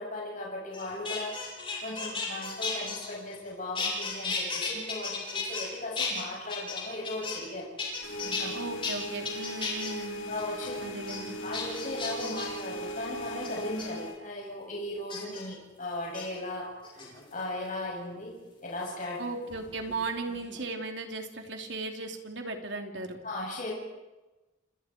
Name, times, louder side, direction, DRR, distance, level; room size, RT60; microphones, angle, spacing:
voice 1, 0.0-1.4 1.8-7.7 8.2-8.5 10.3-10.8 11.4-19.2 23.2-23.7, left 1 dB, 45° left, -3 dB, 7.7 m, -37 dB
sound 1, 0.7-3.5 3.8-5.7 6.0-7.5 7.8-8.4 8.8-8.9 9.3-9.9 10.4-10.7 11.1-11.2 11.5-12.6 13.4-13.9 15.1-15.4 16.0-16.2 16.8-17.4 18.8-20.0 20.3-20.7, left 4 dB, 25° left, 8.0 m, -35 dB
sound 2, 8.0-14.2, right 1 dB, 85° left, 4.2 m, -38 dB
voice 2, 8.5-10.3 10.8-11.4 19.2-23.2, right 3 dB, 70° right, 3 dB, 3.4 m, -36 dB
29.5 x 27.5 x 4.7 m, 1.1 s
head